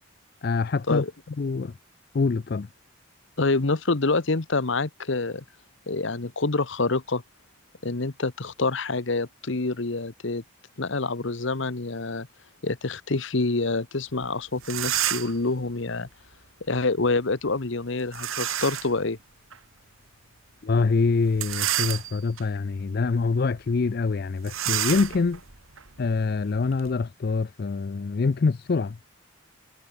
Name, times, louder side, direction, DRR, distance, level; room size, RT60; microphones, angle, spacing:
voice 1, 0.4-1.0 1.4-1.7 2.1-2.7 20.6-25.4 26.0-29.0, left 4 dB, 50° left, 0.4 m, -25 dB
voice 2, 3.4-5.4 5.9-7.2 7.8-10.4 10.8-12.3 12.6-16.1 16.7-19.2, left 3 dB, 65° left, 1.1 m, -26 dB
sound 1, 14.2-14.3 14.6-15.5 18.1-19.0 19.5-19.6 21.3-22.4 23.0-23.2 23.4-23.6 24.4-26.9, right 12 dB, 80° right, 2.1 m, -30 dB
head